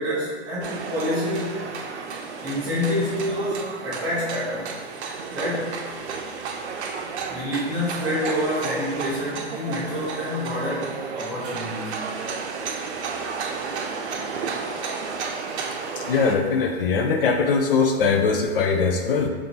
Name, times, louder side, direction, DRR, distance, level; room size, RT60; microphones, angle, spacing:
voice 1, 0.0-1.6 2.4-4.7 5.3-5.8 7.3-12.1, left 1 dB, 15° right, -9 dB, 0.6 m, -27 dB
sound 1, 0.6-16.4, right 5 dB, 90° right, 0.6 m, -32 dB
voice 2, 16.0-19.3, left 5 dB, 55° left, 3 dB, 0.5 m, -21 dB
5.3 x 2.6 x 2.8 m, 1.5 s
hypercardioid pair, 175°, 33 cm